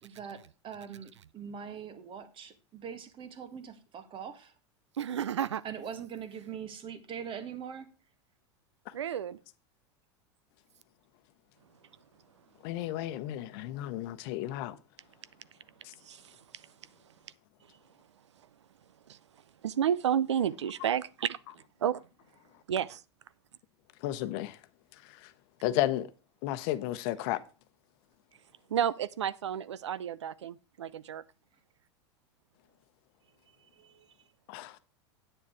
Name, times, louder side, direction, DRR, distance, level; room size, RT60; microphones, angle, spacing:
voice 1, 0.0-4.5 5.6-7.9, right 7 dB, 35° right, 1.7 m, -42 dB
voice 2, 5.0-5.6 8.9-9.4 16.0-16.7 19.1-19.2 19.6-22.0 22.7-23.0 28.7-31.2, right 9 dB, 90° right, 0.5 m, -31 dB
voice 3, 12.6-14.8 24.0-24.6 25.6-26.1 26.4-27.4 34.5-34.7, left 14 dB, 60° left, 0.9 m, -32 dB
8.9 x 7.4 x 4.7 m
hypercardioid pair, 100°, 15 cm